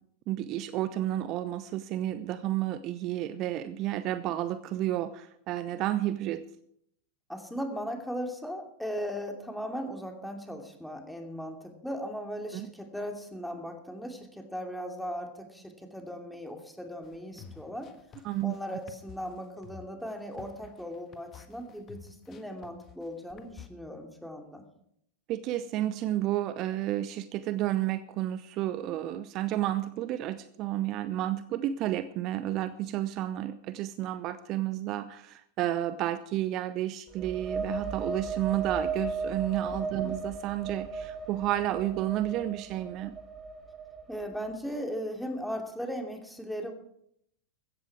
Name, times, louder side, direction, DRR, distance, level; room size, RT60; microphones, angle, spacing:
voice 1, 0.3-6.4 12.5-12.7 18.2-18.6 25.3-43.2, right 13 dB, 45° right, 14 dB, 0.8 m, -31 dB
voice 2, 7.3-17.9 18.4-24.6 39.9-40.1 44.1-46.7, equal, ahead, 3 dB, 2.7 m, -38 dB
sound 1, 17.0-23.7, left 8 dB, 30° left, 1.5 m, -51 dB
sound 2, 37.1-44.7, right 4 dB, 20° right, 2.0 m, -36 dB
16.0 x 13.5 x 4.8 m, 0.72 s
figure-of-eight pair, 90°, 0 cm